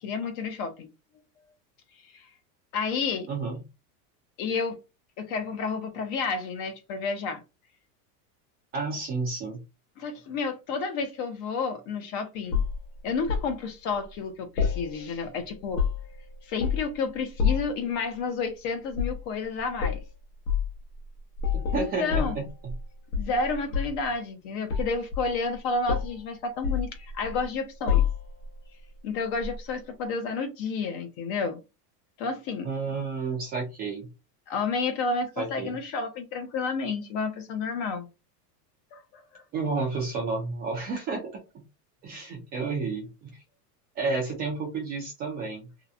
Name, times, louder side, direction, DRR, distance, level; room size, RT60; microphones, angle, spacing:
voice 1, 0.0-0.9 2.1-2.3 2.7-3.3 4.4-4.8 5.2-7.4 10.0-12.6 13.0-15.8 16.4-20.0 21.8-22.4 23.1-28.0 29.0-31.6 32.2-32.7 34.5-38.1 38.9-39.4, left 4 dB, 35° left, 0.5 m, -30 dB
voice 2, 3.3-3.6 8.7-9.6 21.5-22.7 32.6-34.1 35.4-35.8 39.5-41.3 41.5-41.6 42.0-43.4 44.0-45.7, right 4 dB, 20° right, 0.4 m, -31 dB
sound 1, 12.5-13.5 14.6-15.3 15.6-16.2 16.6-17.0 17.4-17.8 18.9-19.2 19.8-20.0 20.5-20.7 21.4-22.8 23.1-24.1 24.7-25.6 25.9-26.2 26.6-27.4 27.9-28.5 29.4-29.6, left 7 dB, 85° left, 0.9 m, -28 dB
2.7 x 2.0 x 2.3 m
supercardioid pair, 145°, 48 cm